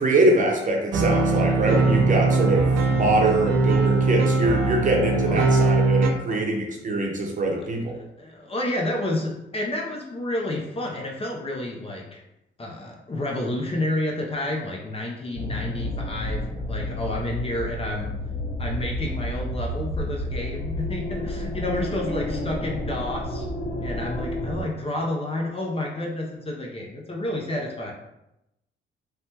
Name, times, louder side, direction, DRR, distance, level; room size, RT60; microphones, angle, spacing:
voice 1, 0.0-7.9, right 2 dB, 40° right, 0 dB, 0.7 m, -23 dB
sound 1, 0.9-6.1, right 3 dB, 80° right, 0.5 m, -21 dB
voice 2, 5.1-5.5 6.3-6.4 7.9-12.2 12.6-18.1 18.6-23.5 23.8-27.9, left 1 dB, 30° left, -1 dB, 0.6 m, -30 dB
sound 2, 15.3-24.6, left 1 dB, 70° left, 1.3 m, -30 dB
3.3 x 2.2 x 2.8 m, 0.88 s
cardioid pair, 90°, 20 cm